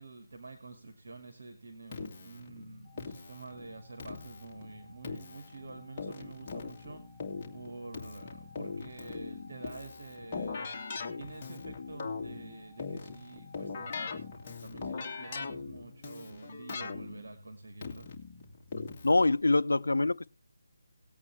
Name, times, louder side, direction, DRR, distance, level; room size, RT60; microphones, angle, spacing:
voice 1, 0.0-7.0 7.5-10.7 11.2-18.1, right 3 dB, 60° right, 2.3 m, -48 dB
Keyboard (musical), 1.9-19.3, left 4 dB, 25° left, 2.5 m, -41 dB
sound 1, 2.8-14.5, left 2 dB, 35° right, 3.4 m, -58 dB
voice 2, 19.0-20.3, left 2 dB, 85° left, 0.6 m, -25 dB
19.0 x 8.5 x 3.4 m
figure-of-eight pair, 165°, 0 cm